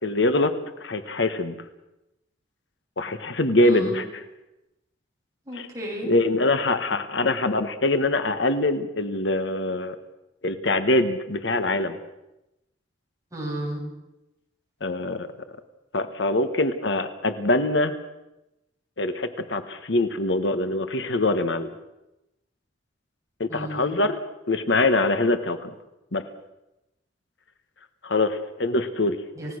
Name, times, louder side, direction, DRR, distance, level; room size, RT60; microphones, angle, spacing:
voice 1, 0.0-1.5 3.0-4.2 5.5-5.7 6.0-10.0 10.4-12.0 14.8-15.3 15.9-17.9 19.0-21.7 23.4-24.2 24.5-25.7 26.1-26.2 28.0-29.2, left 2 dB, 65° left, 9 dB, 1.4 m, -24 dB
voice 2, 3.6-4.0 5.5-6.1 13.3-13.8 23.5-23.9 29.3-29.6, equal, 15° right, -1 dB, 6.7 m, -32 dB
29.0 x 17.0 x 6.5 m, 0.94 s
head